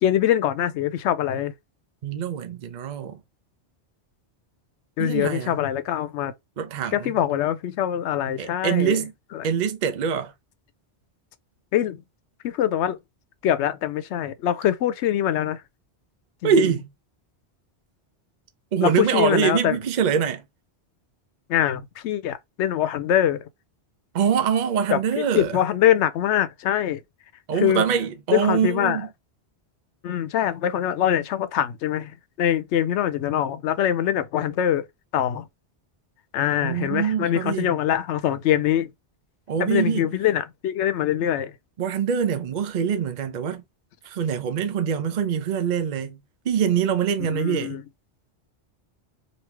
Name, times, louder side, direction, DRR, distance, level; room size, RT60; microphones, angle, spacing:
voice 1, 0.0-1.5 5.0-6.3 6.9-9.0 9.3-9.5 11.7-12.0 12.4-13.0 13.4-15.6 16.4-16.7 18.8-19.8 21.5-23.5 24.9-27.0 27.6-27.8 28.3-29.0 30.0-34.9 35.1-35.5 36.3-38.9 39.6-41.5 47.2-47.8, left 11 dB, 80° left, 0.9 m, -23 dB
voice 2, 2.0-3.2 5.0-5.6 6.6-7.1 8.4-9.1 9.4-10.3 16.4-16.9 18.7-20.4 24.1-25.6 27.5-29.1 36.6-37.7 39.5-40.1 41.8-43.6 44.1-46.2 46.4-47.8, right 7 dB, 50° right, 0.6 m, -24 dB
3.1 x 2.7 x 3.2 m
omnidirectional pair, 1.2 m